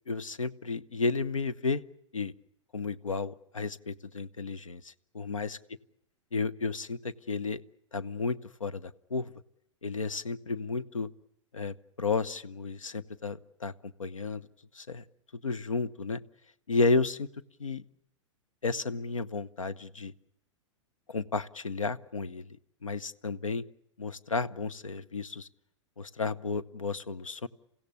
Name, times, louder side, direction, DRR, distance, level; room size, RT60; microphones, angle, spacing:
voice 1, 0.1-1.8 2.1-2.3 2.7-5.6 6.3-7.6 7.9-9.3 9.8-11.1 11.5-14.5 14.7-15.0 15.3-16.2 16.7-17.3 17.6-17.8 18.6-20.1 21.1-23.6 24.0-25.5 26.0-27.5, left 4 dB, 85° left, 15 dB, 0.9 m, -32 dB
29.0 x 16.0 x 9.5 m, 0.79 s
figure-of-eight pair, 105°, 16 cm